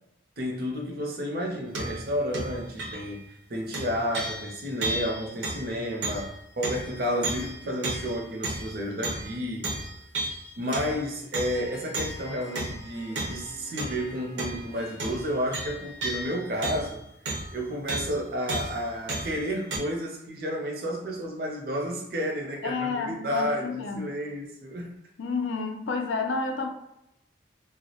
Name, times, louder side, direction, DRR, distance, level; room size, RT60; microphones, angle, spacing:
voice 1, 0.4-3.2 3.5-9.7 10.6-17.0 17.5-25.0, equal, 55° right, 0 dB, 0.5 m, -31 dB
sound 1, 1.7-2.1 2.3-3.2 3.7-9.4 9.6-11.1 11.3-14.1 14.4-14.7 15.0-17.6 17.9-18.2 18.5-19.8, right 2 dB, 90° right, 0.8 m, -34 dB
Harp, 11.2-17.0, left 3 dB, 20° left, 0.4 m, -50 dB
voice 2, 22.6-24.2 25.2-26.7, left 4 dB, 85° left, 4 dB, 0.4 m, -30 dB
2.2 x 2.0 x 2.7 m, 0.86 s
head